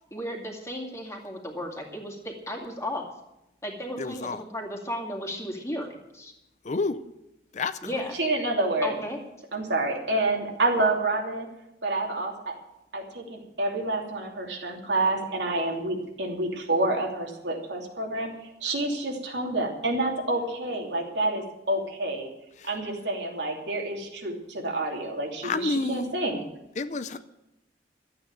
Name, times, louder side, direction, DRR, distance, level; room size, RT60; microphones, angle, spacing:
voice 1, 0.1-3.1 3.6-6.3 7.8-8.2 8.8-9.2, equal, 15° left, 2.3 m, -34 dB
voice 2, 4.0-4.4 6.6-7.1 7.5-8.0 22.6-22.7 25.4-26.1 26.8-27.2, left 3 dB, 40° left, 0.5 m, -30 dB
voice 3, 8.1-8.9 9.5-11.5 11.8-12.6 12.9-18.3 18.6-22.3 22.6-26.4, right 2 dB, 80° right, 2.9 m, -28 dB
13.0 x 8.7 x 8.8 m
head